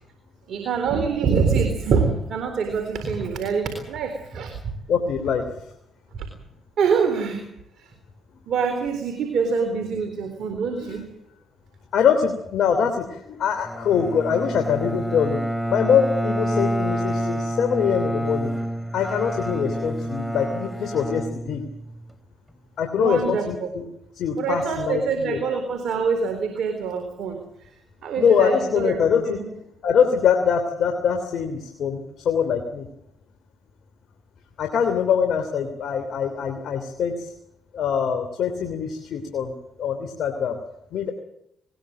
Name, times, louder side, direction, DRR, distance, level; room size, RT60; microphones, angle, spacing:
voice 1, 0.5-4.5 6.1-6.3 6.8-7.4 7.8-7.9 8.5-11.0 23.0-23.7 24.4-27.7 28.0-29.0 29.3-29.4, right 5 dB, 70° right, 6 dB, 3.9 m, -25 dB
voice 2, 4.9-5.4 10.8-11.0 11.9-15.4 15.7-18.5 18.9-21.6 22.8-23.8 24.2-25.4 28.2-29.4 29.8-32.9 34.6-37.3 37.7-40.6 40.9-41.1, left 7 dB, 70° left, 5 dB, 3.1 m, -23 dB
Bowed string instrument, 13.6-22.1, equal, ahead, 3.0 m, -28 dB
20.5 x 20.0 x 7.8 m, 0.77 s
supercardioid pair, 55°, 0 cm